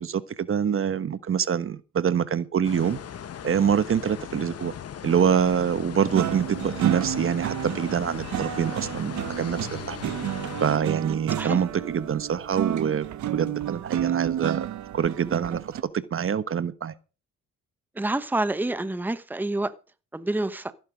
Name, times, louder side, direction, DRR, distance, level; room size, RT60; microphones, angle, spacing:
voice 1, 0.0-3.0 3.4-4.7 5.0-10.1 10.6-13.1 13.3-14.7 14.9-15.7 16.1-16.9, right 8 dB, 45° right, 1.1 m, -25 dB
sound 1, 2.6-10.8, left 9 dB, 55° left, 1.3 m, -38 dB
sound 2, 6.1-15.8, right 11 dB, 70° right, 1.3 m, -31 dB
voice 2, 18.0-19.7 20.1-20.7, right 2 dB, 5° right, 1.0 m, -27 dB
15.5 x 10.5 x 5.2 m
cardioid pair, 90°, 30 cm